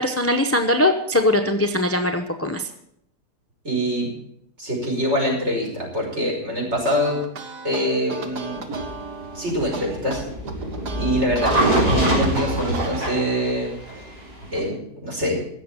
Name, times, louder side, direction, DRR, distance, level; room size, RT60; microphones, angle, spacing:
voice 1, 0.0-2.7, left 1 dB, 10° left, 6 dB, 0.7 m, -21 dB
voice 2, 3.6-4.1 4.6-7.2 7.6-8.6 9.3-10.2 11.0-14.0 14.5-15.4, equal, 40° right, -2 dB, 5.6 m, -24 dB
sound 1, 6.7-13.5, right 4 dB, 85° right, 2.1 m, -35 dB
sound 2, 8.7-14.6, right 1 dB, 65° right, 4.9 m, -24 dB
16.5 x 7.2 x 8.9 m, 0.75 s
omnidirectional pair, 1.7 m